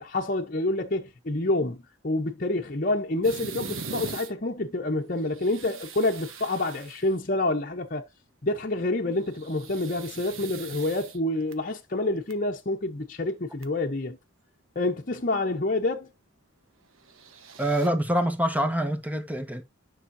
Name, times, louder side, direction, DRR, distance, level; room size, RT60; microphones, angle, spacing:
voice 1, 0.0-8.0 8.4-14.2 14.7-16.1, left 2 dB, 45° left, 1.0 m, -28 dB
sound 1, 3.2-4.3 5.2-7.2 9.2-11.5 12.1-12.3 13.3-13.4 13.6-13.7 17.0-17.9, right 5 dB, 85° right, 1.3 m, -41 dB
voice 2, 17.6-19.6, equal, 10° right, 1.4 m, -25 dB
9.8 x 5.7 x 2.8 m
head